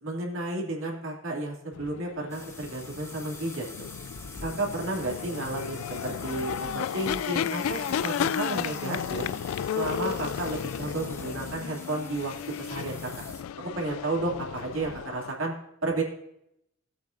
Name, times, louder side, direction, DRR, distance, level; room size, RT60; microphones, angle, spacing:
voice 1, 0.0-3.9 4.4-9.2 9.7-13.3 13.6-15.5 15.8-16.0, right 2 dB, 70° right, -1 dB, 2.5 m, -32 dB
sound 1, 1.7-15.3, left 8 dB, 90° left, 0.3 m, -34 dB
sound 2, 2.3-13.4, left 2 dB, 15° left, 1.6 m, -44 dB
18.0 x 8.5 x 2.6 m, 0.77 s
head